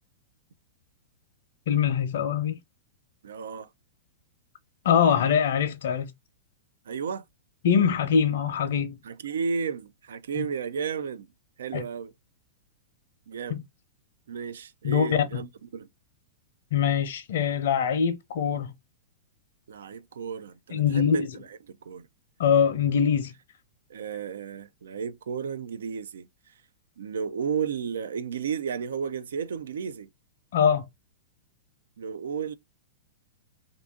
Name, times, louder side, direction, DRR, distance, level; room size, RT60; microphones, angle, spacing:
voice 1, 1.7-2.6 4.8-6.1 7.6-9.0 10.4-10.5 11.7-11.8 13.5-13.6 14.8-15.2 16.7-18.7 20.7-21.3 22.4-23.3 30.5-30.8, left 7 dB, 70° left, 0.7 m, -23 dB
voice 2, 3.2-3.7 6.9-7.2 9.0-11.3 11.6-12.1 13.3-13.6 14.3-15.9 19.7-22.1 23.9-26.3 27.0-30.1 32.0-32.5, right 6 dB, 80° right, 0.4 m, -33 dB
2.6 x 2.5 x 3.5 m
hypercardioid pair, 125°, 0 cm